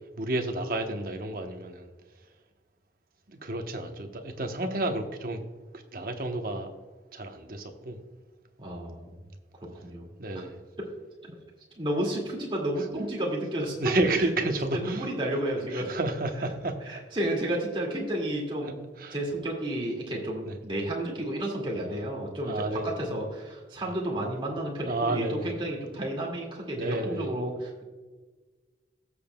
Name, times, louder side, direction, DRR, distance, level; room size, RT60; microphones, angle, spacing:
voice 1, 0.2-1.9 3.3-5.5 5.9-6.7 7.1-8.0 10.2-10.6 13.8-15.0 15.7-16.7 19.0-19.1 20.5-20.6 22.4-22.9 24.9-25.5 26.7-27.3, right 2 dB, 50° right, 4 dB, 0.9 m, -30 dB
voice 2, 8.6-9.1 9.8-10.0 10.3-10.4 11.2-11.3 11.8-15.9 16.8-18.8 19.1-27.8, right 1 dB, 25° right, -2 dB, 2.1 m, -32 dB
17.0 x 7.0 x 2.2 m, 1.3 s
head